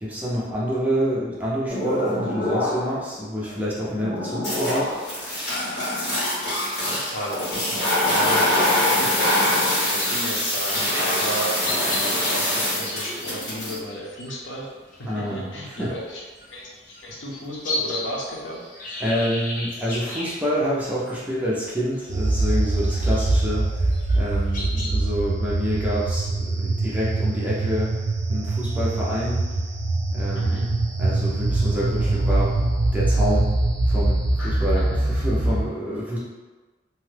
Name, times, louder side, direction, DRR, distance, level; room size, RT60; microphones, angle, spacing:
voice 1, 0.0-5.2 15.1-15.9 19.0-23.7 24.1-28.0 28.3-29.5 30.1-30.7 31.0-33.5 33.9-36.2, equal, 10° right, -7 dB, 0.5 m, -27 dB
sound 1, 1.7-3.0 3.4-13.8, left 1 dB, 70° left, 1.5 m, -24 dB
voice 2, 6.9-8.5 9.0-9.2 9.8-14.7 15.0-16.2 16.5-16.6 17.0-18.6 30.3-30.6 34.4-34.8, equal, 85° left, -4 dB, 0.8 m, -33 dB
sound 2, 10.4-21.6 21.9-22.3 22.6-23.4 23.8-25.0, left 2 dB, 45° left, 0.6 m, -35 dB
sound 3, 22.1-35.7, right 2 dB, 80° right, 0.5 m, -23 dB
2.9 x 2.2 x 3.3 m, 1.3 s
head